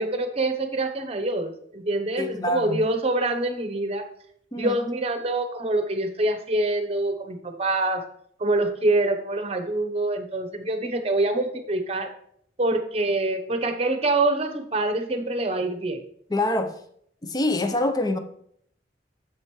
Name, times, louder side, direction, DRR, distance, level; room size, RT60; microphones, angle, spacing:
voice 1, 0.0-4.1 4.6-8.0 8.4-12.1 12.6-16.0, right 2 dB, 35° right, 0.8 m, -25 dB
voice 2, 2.2-2.8 4.5-4.8 16.3-16.8 17.2-18.2, left 1 dB, 20° left, 0.6 m, -25 dB
7.8 x 7.4 x 3.1 m
head